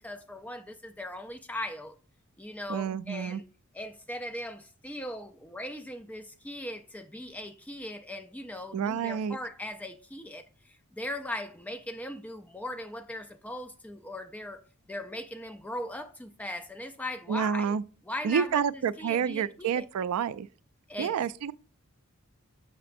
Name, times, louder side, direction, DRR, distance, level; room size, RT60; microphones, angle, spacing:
voice 1, 0.0-2.0 2.4-3.4 3.7-14.6 14.9-17.7 18.0-19.9 20.9-21.3, left 1 dB, 5° left, 0.4 m, -39 dB
voice 2, 2.7-3.4 8.7-9.4 17.3-17.8 18.2-20.5 21.0-21.5, right 7 dB, 85° right, 0.3 m, -29 dB
6.6 x 5.8 x 2.6 m
head